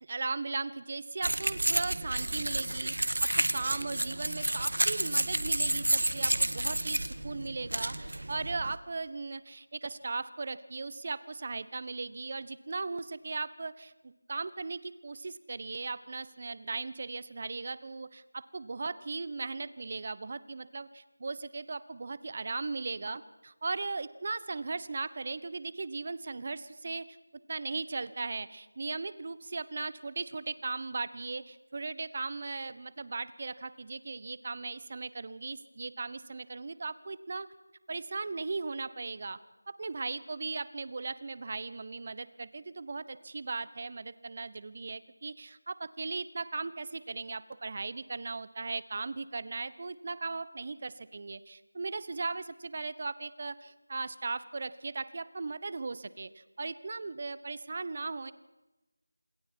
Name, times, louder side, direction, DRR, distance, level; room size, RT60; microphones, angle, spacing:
voice 1, 0.0-27.2 27.5-37.5 37.9-39.4 39.7-58.3, right 3 dB, 40° right, 16 dB, 1.1 m, -38 dB
sound 1, 1.2-8.8, right 1 dB, 75° right, 1.6 m, -30 dB
27.5 x 21.0 x 4.6 m, 1.0 s
figure-of-eight pair, 170°, 0 cm